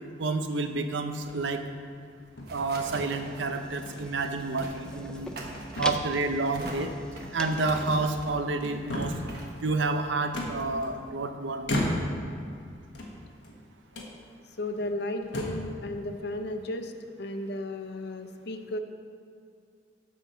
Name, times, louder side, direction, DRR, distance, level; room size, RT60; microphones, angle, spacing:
voice 1, 0.2-1.6 2.5-5.3 5.8-6.9 7.3-9.1 9.6-11.7, right 3 dB, 90° right, 7 dB, 0.7 m, -29 dB
sound 1, 1.1-1.6 2.4-3.1 3.9-4.1 4.5-4.6 5.1-5.5 5.8-6.5 7.5-8.2 8.6-9.4 10.3-11.2 11.6-12.3 12.9-13.5 13.9-14.1 14.8-14.9 15.2-15.7, left 1 dB, 85° left, 1.4 m, -34 dB
sound 2, 1.9-11.1, right 2 dB, 60° right, 1.2 m, -44 dB
sound 3, 3.2-8.2, left 1 dB, 5° left, 0.4 m, -42 dB
voice 2, 14.6-16.9 17.2-18.8, left 1 dB, 65° left, 7 dB, 0.6 m, -34 dB
7.4 x 5.8 x 6.8 m, 2.3 s
head